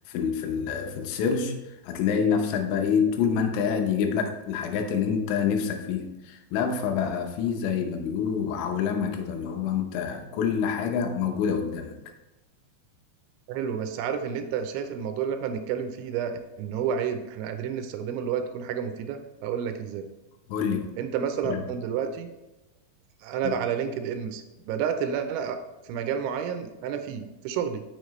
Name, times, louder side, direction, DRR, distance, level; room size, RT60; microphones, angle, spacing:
voice 1, 0.1-1.6 1.8-12.0 20.5-21.0 21.4-21.6 23.4-23.6, left 7 dB, 90° left, 5 dB, 3.3 m, -27 dB
voice 2, 13.5-16.3 16.6-20.1 21.0-22.3 23.2-25.6 25.8-27.8, right 7 dB, 85° right, 7 dB, 3.0 m, -30 dB
6.9 x 6.5 x 3.1 m, 1.0 s
omnidirectional pair, 5.4 m